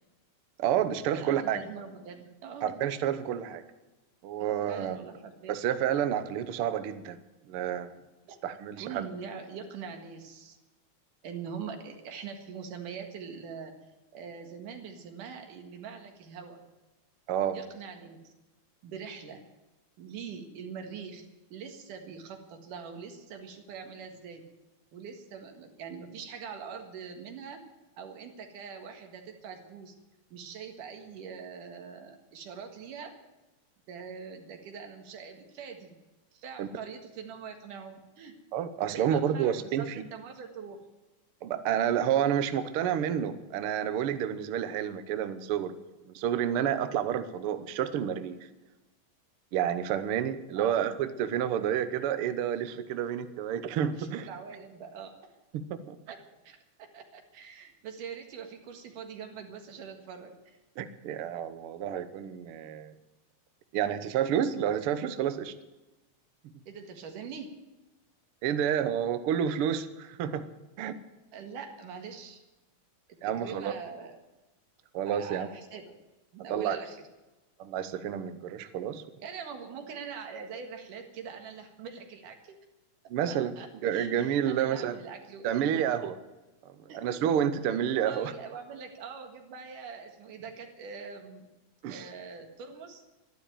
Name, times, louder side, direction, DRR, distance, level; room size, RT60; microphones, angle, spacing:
voice 1, 0.6-1.6 2.6-3.6 4.2-5.0 5.5-7.2 7.5-7.9 8.4-9.1 17.3-17.6 36.6-36.7 38.5-39.9 41.4-45.8 46.1-48.4 49.5-54.3 55.5-56.0 60.8-62.9 63.7-65.5 68.4-70.5 70.8-71.0 73.2-73.7 74.9-75.5 76.5-76.8 77.6-79.0 83.1-83.5 83.8-84.9 85.4-86.1 87.0-88.3 91.8-92.0, right 9 dB, 65° right, 11 dB, 1.4 m, -29 dB
voice 2, 1.1-2.8 4.4-5.6 8.3-8.4 8.8-10.6 11.2-13.7 14.1-16.6 17.5-18.3 18.8-19.4 20.0-24.4 24.9-27.6 28.0-29.9 30.3-33.1 33.9-36.0 36.3-38.4 38.9-40.8 50.6-50.9 54.0-55.3 56.1-60.6 61.8-61.9 66.7-67.5 71.3-72.4 73.1-74.2 75.1-75.9 76.3-77.0 79.2-82.6 83.3-85.8 86.9-87.0 88.0-91.5 91.9-93.0, right 6 dB, 85° right, 5 dB, 3.3 m, -43 dB
12.5 x 12.0 x 9.0 m, 1.1 s
omnidirectional pair, 3.6 m